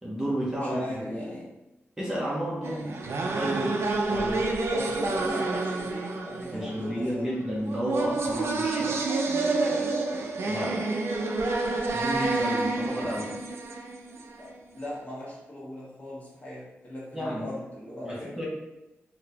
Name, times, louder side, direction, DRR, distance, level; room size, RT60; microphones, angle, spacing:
voice 1, 0.0-1.1 2.0-4.5 6.5-9.0 10.5-10.9 11.7-13.4 17.1-17.5 18.0-18.5, equal, 10° right, -6 dB, 0.6 m, -32 dB
voice 2, 0.6-1.5 2.6-3.0 4.7-7.3 9.1-10.0 14.4-18.5, left 1 dB, 35° left, -6 dB, 1.2 m, -39 dB
sound 1, 2.6-14.5, right 3 dB, 65° right, 0.4 m, -29 dB
3.9 x 2.0 x 2.7 m, 0.97 s
wide cardioid pair, 145°, 5 cm